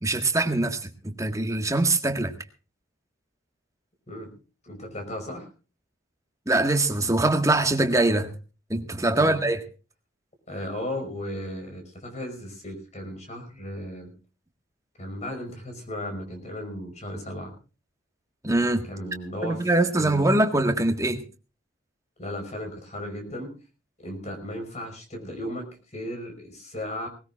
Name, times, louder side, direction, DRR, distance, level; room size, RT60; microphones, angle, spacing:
voice 1, 0.0-2.3 6.5-8.3 8.7-9.6 18.4-18.8 19.4-21.2, right 2 dB, 15° right, 1.6 m, -23 dB
voice 2, 4.6-5.5 9.1-9.4 10.5-14.1 15.0-17.5 18.9-19.7 20.0-20.3 22.2-23.5 24.0-27.1, left 1 dB, 35° left, 5.5 m, -35 dB
20.0 x 19.0 x 2.5 m
head